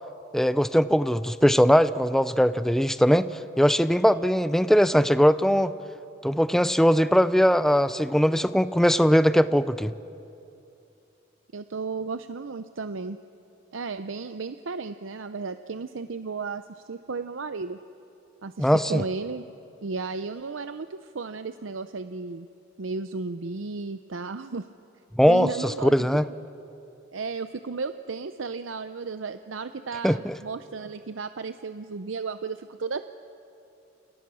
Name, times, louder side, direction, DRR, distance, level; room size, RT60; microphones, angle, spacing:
voice 1, 0.3-5.7 6.2-9.9 18.6-19.0 25.1-26.3 30.0-30.4, equal, ahead, 13 dB, 0.6 m, -20 dB
voice 2, 11.5-13.2 13.7-17.8 18.4-19.5 19.8-22.5 22.8-24.7 25.3-26.2 27.1-33.1, right 4 dB, 80° right, 10 dB, 0.6 m, -34 dB
29.0 x 28.5 x 6.2 m, 2.8 s
head